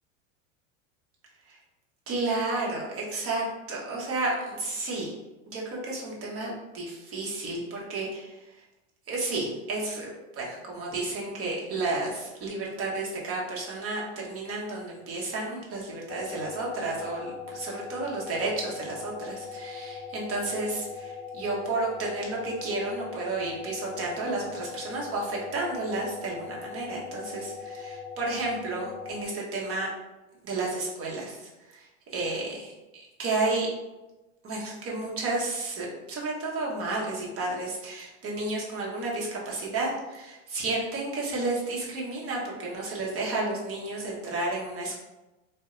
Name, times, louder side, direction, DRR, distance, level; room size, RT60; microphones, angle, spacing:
voice 1, 2.1-5.1 5.5-8.4 9.1-10.1 10.4-29.9 30.4-31.9 32.1-32.7 33.2-33.7 34.4-45.0, right 2 dB, 35° right, -3 dB, 1.1 m, -32 dB
sound 1, 16.1-29.3, left 5 dB, 65° left, 0.6 m, -40 dB
2.6 x 2.2 x 3.7 m, 1.0 s
hypercardioid pair, 105°, 39 cm